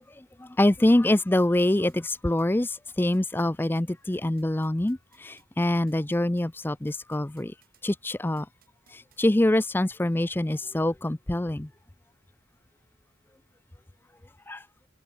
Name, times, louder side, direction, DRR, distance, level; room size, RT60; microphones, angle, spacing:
voice 1, 0.2-7.5 7.8-8.5 8.9-11.7 14.5-14.6, left 1 dB, 10° left, 0.4 m, -25 dB
sound 1, 1.4-9.2, right 8 dB, 50° right, 7.2 m, -62 dB
open air
head